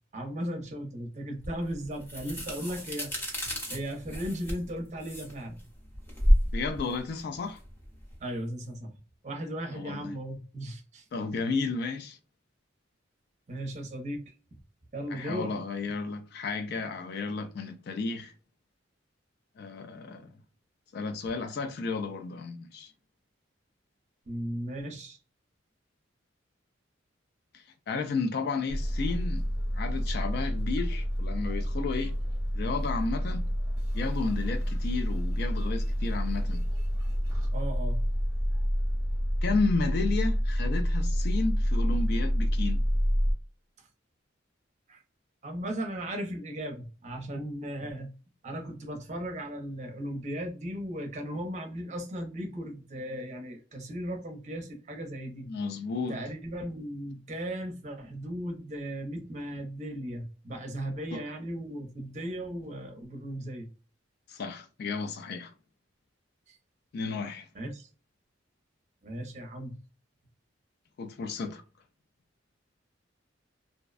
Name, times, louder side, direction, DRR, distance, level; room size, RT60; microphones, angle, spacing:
voice 1, 0.1-3.1 3.7-5.6 8.2-8.9 9.2-11.1 13.5-14.3 14.9-15.5 24.3-25.2 37.5-38.0 43.8-43.9 44.9-45.0 45.4-48.1 48.4-55.5 56.1-63.7 66.5-66.6 67.5-67.9 69.0-69.7, equal, 35° right, 0.5 m, -36 dB
sound 1, 1.4-8.2, equal, 10° left, 0.6 m, -30 dB
voice 2, 6.5-7.6 9.7-10.1 11.1-12.2 15.1-18.3 19.6-20.4 20.9-22.9 27.5-29.5 29.7-32.1 32.5-33.5 33.9-36.6 39.4-42.8 55.5-56.2 61.1-61.2 64.3-65.5 66.9-67.5 71.0-71.6, left 4 dB, 55° left, 0.3 m, -32 dB
sound 2, 28.7-43.3, equal, 10° right, 0.9 m, -28 dB
2.5 x 2.1 x 2.4 m
head